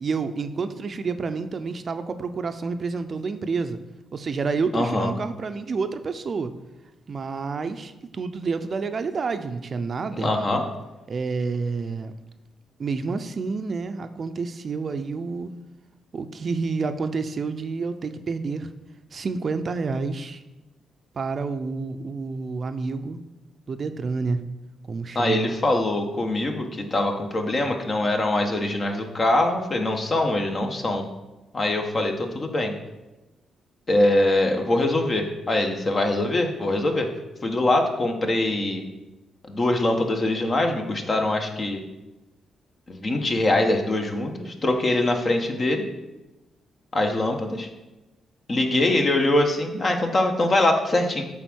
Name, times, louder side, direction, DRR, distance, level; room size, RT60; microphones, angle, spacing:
voice 1, 0.0-3.8 4.1-6.5 7.1-10.5 11.1-12.1 12.8-15.5 16.1-18.7 19.1-20.4 21.2-23.2 23.7-24.4 24.9-25.5, right 4 dB, 50° right, 9 dB, 0.6 m, -29 dB
voice 2, 4.7-5.1 10.2-10.7 25.1-31.1 31.5-32.7 33.9-37.1 37.4-38.8 39.5-41.8 42.9-45.8 46.9-47.7 48.5-51.2, left 1 dB, 40° left, 3 dB, 1.3 m, -23 dB
8.0 x 3.8 x 6.3 m, 1.0 s
supercardioid pair, 65°, 0 cm